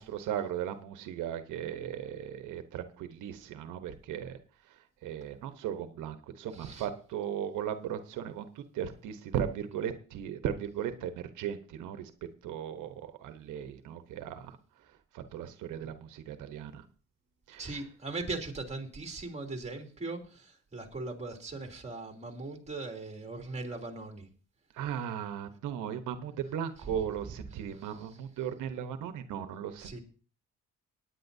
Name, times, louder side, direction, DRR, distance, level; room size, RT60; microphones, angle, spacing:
voice 1, 0.0-4.4 4.7-4.8 5.0-12.1 12.4-14.6 15.1-16.8 17.5-17.8 24.7-30.0, right 9 dB, 85° right, 9 dB, 1.0 m, -37 dB
voice 2, 6.5-6.8 17.6-24.3 26.8-27.1 27.7-28.1 29.8-30.0, right 3 dB, 20° right, 2 dB, 2.9 m, -39 dB
18.0 x 9.8 x 2.7 m, 0.39 s
cardioid pair, 90°, 30 cm